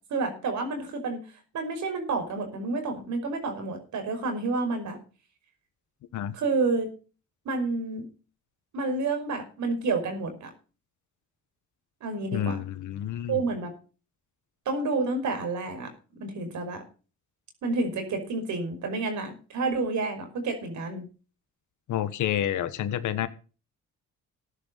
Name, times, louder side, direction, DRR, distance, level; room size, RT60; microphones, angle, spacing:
voice 1, 0.1-1.2 1.5-5.0 6.3-6.9 7.5-8.0 8.7-10.5 12.0-12.6 13.3-13.7 14.7-15.9 16.2-16.8 17.6-21.0, right 3 dB, 70° right, 6 dB, 5.6 m, -29 dB
voice 2, 12.3-13.4 21.9-23.3, left 11 dB, 75° left, 13 dB, 1.4 m, -29 dB
14.5 x 11.0 x 4.1 m, 0.36 s
cardioid pair, 90°, 30 cm